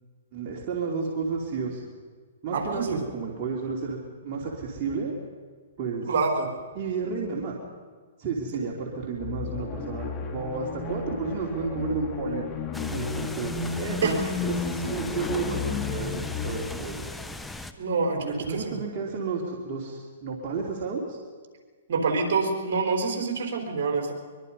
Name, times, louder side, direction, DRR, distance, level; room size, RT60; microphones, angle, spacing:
voice 1, 0.3-1.9 2.4-5.1 5.8-6.1 6.7-7.6 8.2-12.5 12.9-17.1 18.1-21.2, right 4 dB, 35° right, -3 dB, 3.1 m, -32 dB
voice 2, 2.5-3.0 6.1-6.5 14.0-14.1 17.8-18.7 21.9-24.1, right 4 dB, 60° right, 3 dB, 4.6 m, -26 dB
sound 1, 9.2-16.8, left 5 dB, 25° left, 2.4 m, -33 dB
sound 2, 12.7-17.7, left 2 dB, 5° left, 0.9 m, -38 dB
23.5 x 23.0 x 5.4 m, 1.5 s
hypercardioid pair, 145°, 0 cm